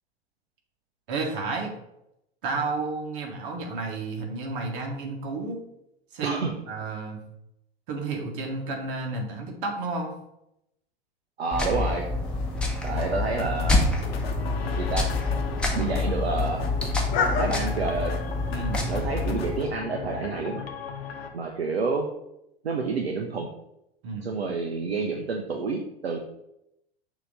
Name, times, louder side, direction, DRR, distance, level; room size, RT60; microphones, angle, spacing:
voice 1, 1.1-1.7 2.4-5.6 6.1-7.2 7.9-10.1 18.5-18.8 24.0-24.3, right 3 dB, 55° right, 2 dB, 1.5 m, -31 dB
voice 2, 6.2-6.5 11.4-12.0 12.8-13.8 14.8-15.0 15.8-16.6 17.4-18.1 18.9-20.6 21.3-22.1 22.6-23.5 24.2-26.2, right 4 dB, 80° right, 2 dB, 0.8 m, -28 dB
sound 1, 11.5-19.6, left 2 dB, 5° left, 1.1 m, -28 dB
sound 2, 12.2-17.6, left 5 dB, 40° left, 1.3 m, -33 dB
sound 3, 13.0-21.3, left 6 dB, 70° left, 0.9 m, -36 dB
6.6 x 3.0 x 5.2 m, 0.82 s
figure-of-eight pair, 90°, 31 cm